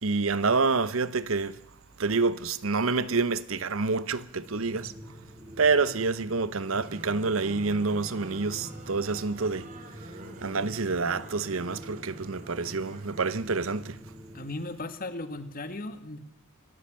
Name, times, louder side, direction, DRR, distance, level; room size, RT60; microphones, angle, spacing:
voice 1, 0.0-1.6 2.0-4.9 5.6-9.7 10.4-14.0, right 4 dB, 70° right, 0.9 m, -27 dB
sound 1, 4.3-14.5, equal, 20° right, 2.5 m, -47 dB
sound 2, 6.6-13.9, right 2 dB, 40° right, 2.7 m, -47 dB
voice 2, 14.3-16.2, left 2 dB, 45° left, 1.8 m, -36 dB
25.0 x 14.0 x 7.6 m
head